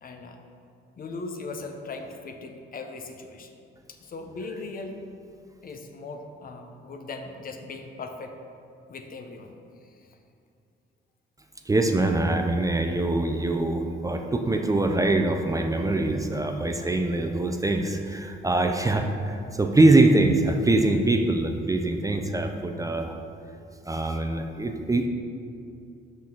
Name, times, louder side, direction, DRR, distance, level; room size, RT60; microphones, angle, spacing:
voice 1, 0.0-0.4 1.0-3.6 3.9-5.0 5.6-8.3 8.9-9.5 9.8-10.1, left 3 dB, 45° left, 5 dB, 0.7 m, -39 dB
voice 2, 11.7-23.2 23.9-25.1, right 2 dB, 15° right, 4 dB, 0.5 m, -23 dB
6.0 x 5.8 x 4.5 m, 2.5 s
cardioid pair, 90°, 20 cm